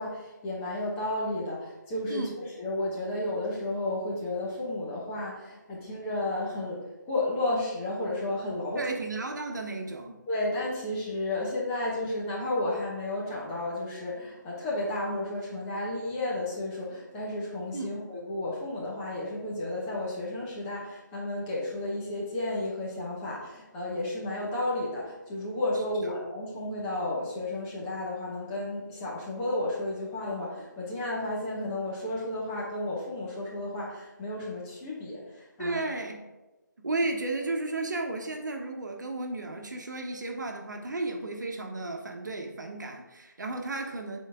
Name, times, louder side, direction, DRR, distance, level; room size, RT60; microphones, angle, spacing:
voice 1, 0.0-8.8 10.3-35.8, left 1 dB, 15° left, -5 dB, 1.1 m, -32 dB
voice 2, 8.7-10.1 17.7-18.0 35.6-36.2 36.8-44.2, right 2 dB, 65° right, 3 dB, 1.2 m, -33 dB
8.2 x 4.0 x 3.6 m, 1.1 s
figure-of-eight pair, 160°, 10 cm